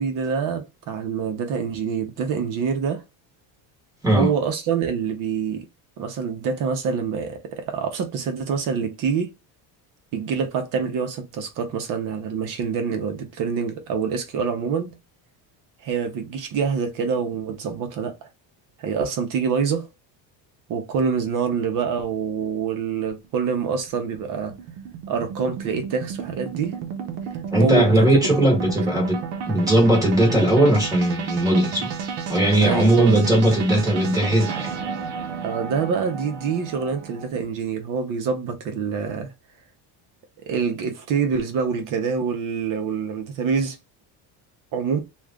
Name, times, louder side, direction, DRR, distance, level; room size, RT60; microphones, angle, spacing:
voice 1, 0.0-3.0 4.1-5.7 6.0-9.3 10.1-15.0 15.8-18.3 18.8-19.9 20.7-24.5 25.1-26.8 27.6-28.1 32.6-33.2 35.4-39.3 40.5-43.8 44.7-45.0, right 6 dB, 45° right, 0.9 m, -26 dB
sound 1, 23.2-37.3, right 6 dB, 75° right, 0.9 m, -32 dB
voice 2, 27.5-29.2 29.5-31.9 32.3-34.7, right 1 dB, 10° right, 1.1 m, -18 dB
3.1 x 2.5 x 3.6 m
cardioid pair, 170°, 43 cm